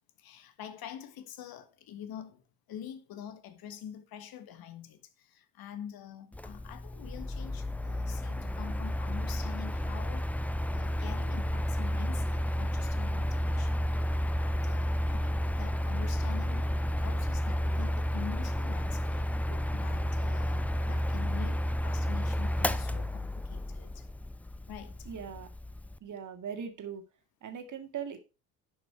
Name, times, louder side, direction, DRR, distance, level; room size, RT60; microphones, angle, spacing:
voice 1, 0.2-2.4 2.7-10.3 10.7-14.1 14.3-16.6 17.0-19.3 19.7-24.1 24.7-25.1, left 9 dB, 50° left, 1.5 m, -46 dB
Mechanical fan, 6.3-26.0, equal, 5° left, 0.4 m, -31 dB
voice 2, 25.1-25.5 26.0-27.0 27.4-28.2, right 7 dB, 40° right, 2.0 m, -40 dB
11.0 x 5.9 x 4.6 m
figure-of-eight pair, 55°, 46 cm